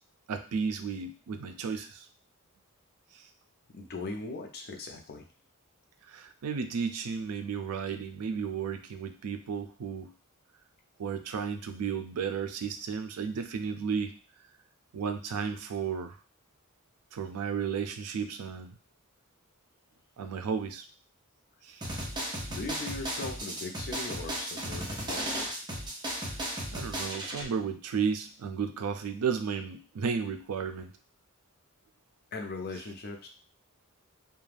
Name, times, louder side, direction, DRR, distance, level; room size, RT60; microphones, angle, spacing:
voice 1, 0.3-2.1 3.1-3.2 6.1-10.1 11.0-14.2 14.9-16.2 17.1-18.8 20.2-20.9 21.6-21.8 26.7-30.9, right 6 dB, 90° right, 7 dB, 0.4 m, -33 dB
voice 2, 3.7-5.3 22.5-25.5 32.3-33.3, left 3 dB, 45° left, 3 dB, 0.5 m, -39 dB
sound 1, 21.8-27.4, right 1 dB, 20° right, 0.7 m, -35 dB
2.4 x 2.2 x 3.2 m, 0.37 s
head